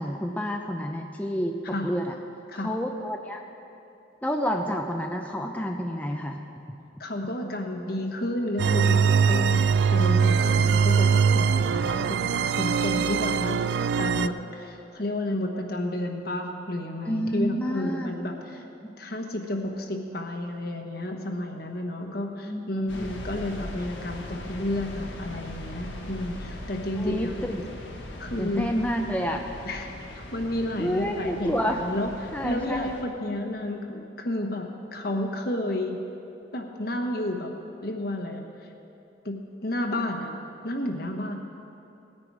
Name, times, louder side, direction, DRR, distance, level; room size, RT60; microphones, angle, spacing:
voice 1, 0.0-2.1 2.6-3.4 4.2-6.4 6.7-6.8 10.6-10.7 17.1-18.1 18.8-18.9 22.0-22.7 23.0-23.1 27.0-27.6 28.4-29.5 30.8-31.8 32.3-32.9, equal, 10° left, 2 dB, 0.6 m, -29 dB
voice 2, 7.0-13.6 14.0-18.6 19.0-27.4 28.2-28.7 29.6-36.0 36.5-37.5 37.8-38.4 39.2-40.3 40.6-41.3, left 1 dB, 55° left, 3 dB, 1.3 m, -31 dB
sound 1, 8.6-14.3, right 6 dB, 70° right, 0.3 m, -22 dB
sound 2, 22.9-33.0, left 1 dB, 80° left, 1.6 m, -40 dB
18.5 x 9.8 x 4.8 m, 2.8 s
head